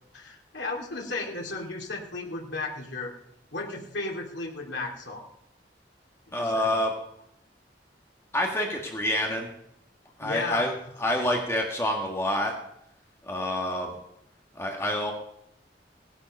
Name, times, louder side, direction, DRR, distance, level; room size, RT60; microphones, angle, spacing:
voice 1, 0.1-3.1 3.5-5.3 6.3-6.7 10.2-10.7, left 3 dB, 85° left, -1 dB, 2.6 m, -34 dB
voice 2, 6.3-6.9 8.3-9.5 10.2-10.7 11.0-12.5 13.2-14.0 14.5-15.1, left 1 dB, 15° left, 0 dB, 1.8 m, -27 dB
17.5 x 11.0 x 5.4 m, 0.77 s
head